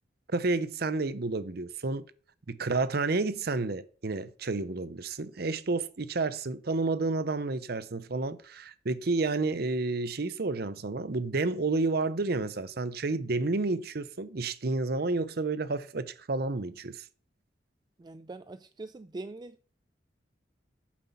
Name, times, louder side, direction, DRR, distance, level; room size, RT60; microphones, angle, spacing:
voice 1, 0.3-2.1 2.5-17.0, right 3 dB, 60° right, 0.7 m, -30 dB
voice 2, 18.0-19.6, right 2 dB, 25° right, 0.4 m, -42 dB
9.3 x 7.4 x 5.7 m
head